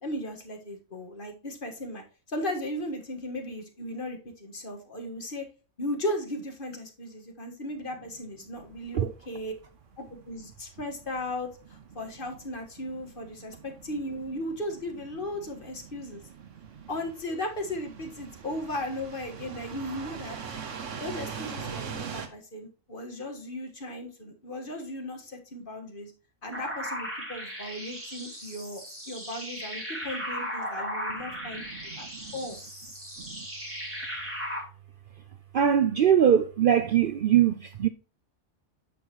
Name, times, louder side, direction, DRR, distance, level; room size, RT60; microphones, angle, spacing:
voice 1, 0.0-5.5 5.8-9.5 10.0-16.2 16.9-20.4 21.0-26.1 26.4-32.1 32.3-32.6, left 1 dB, 45° left, 1.7 m, -36 dB
sound 1, 8.6-22.3, right 6 dB, 85° right, 1.5 m, -43 dB
sound 2, 26.5-34.6, equal, 10° right, 3.7 m, -37 dB
voice 2, 31.4-31.9 32.2-32.3 33.2-33.5 35.5-37.9, right 9 dB, 60° right, 0.6 m, -23 dB
9.5 x 6.4 x 3.0 m
omnidirectional pair, 1.3 m